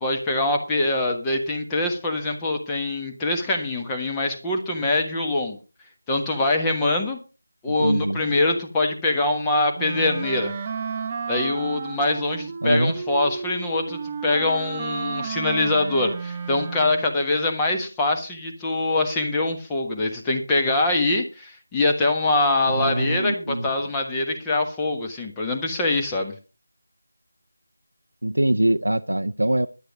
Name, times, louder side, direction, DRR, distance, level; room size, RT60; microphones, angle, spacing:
voice 1, 0.0-5.6 6.1-7.2 7.6-10.5 11.3-26.3, left 2 dB, 10° left, 1 dB, 1.3 m, -24 dB
voice 2, 7.7-8.2 12.6-12.9 22.7-23.7 28.2-29.7, right 1 dB, 70° right, 7 dB, 0.6 m, -23 dB
Wind instrument woodwind instrument, 9.8-17.2, right 5 dB, 20° right, 0.7 m, -32 dB
10.5 x 9.8 x 5.0 m, 0.33 s
figure-of-eight pair, 165°, 0 cm